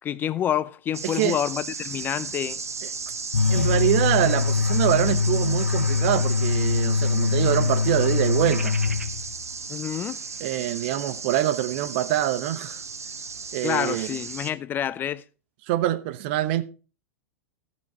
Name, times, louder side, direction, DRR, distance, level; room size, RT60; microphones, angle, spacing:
voice 1, 0.0-2.6 9.7-10.2 13.6-15.2, left 10 dB, 25° left, 0.4 m, -28 dB
sound 1, 0.9-14.5, right 5 dB, 85° right, 1.0 m, -35 dB
voice 2, 1.0-1.4 3.5-8.8 10.4-12.8 13.5-14.2 15.7-16.6, right 14 dB, 50° right, 0.9 m, -25 dB
sound 2, 3.3-9.5, left 5 dB, 80° left, 0.5 m, -23 dB
13.0 x 7.4 x 4.4 m
figure-of-eight pair, 95°, 8 cm